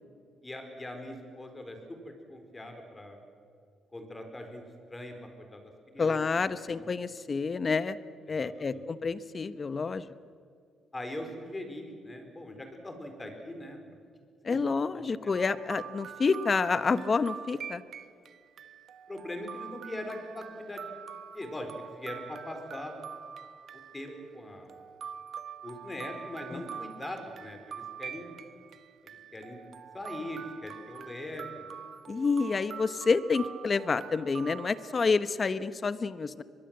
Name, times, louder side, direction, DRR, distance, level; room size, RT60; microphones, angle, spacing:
voice 1, 0.4-3.2 3.9-4.6 4.9-5.6 5.9-6.2 6.7-6.9 8.3-8.8 10.9-13.8 14.5-14.6 14.9-15.3 19.1-20.9 21.3-22.9 23.9-24.7 25.6-28.3 29.3-29.6 29.9-31.7, left 1 dB, 20° left, 5 dB, 4.6 m, -41 dB
voice 2, 6.0-8.0 8.3-10.1 14.4-17.8 26.5-26.6 32.1-36.4, left 4 dB, 35° left, 14 dB, 1.0 m, -28 dB
sound 1, 15.3-35.0, right 7 dB, 60° right, 1.1 m, -45 dB
24.0 x 21.5 x 7.8 m, 2.3 s
cardioid pair, 90°, 0 cm